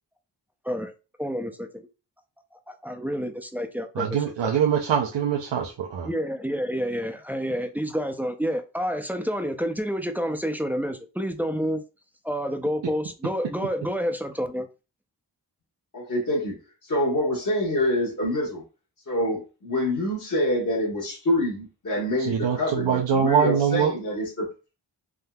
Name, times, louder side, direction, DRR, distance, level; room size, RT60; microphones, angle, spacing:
voice 1, 1.2-1.7 2.7-4.1 4.4-4.6 6.0-11.8 12.2-14.7, equal, 5° right, 0.3 m, -29 dB
voice 2, 4.0-6.1 22.2-23.9, right 7 dB, 85° right, 0.5 m, -23 dB
voice 3, 15.9-16.6 16.8-18.6 19.1-24.5, left 1 dB, 45° left, 1.0 m, -26 dB
3.5 x 2.7 x 2.2 m
wide cardioid pair, 85°, 42 cm